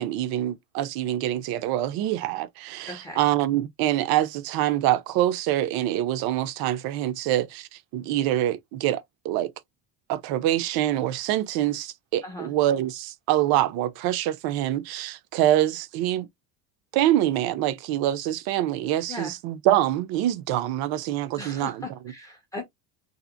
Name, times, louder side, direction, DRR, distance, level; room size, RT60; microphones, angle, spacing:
voice 1, 0.0-9.5 10.1-16.3 16.9-22.0, right 13 dB, 60° right, 0.5 m, -25 dB
voice 2, 2.9-3.2 12.2-12.5 19.1-19.3 21.4-22.6, left 2 dB, 10° left, 0.4 m, -38 dB
2.8 x 2.4 x 2.4 m
cardioid pair, 180°, 41 cm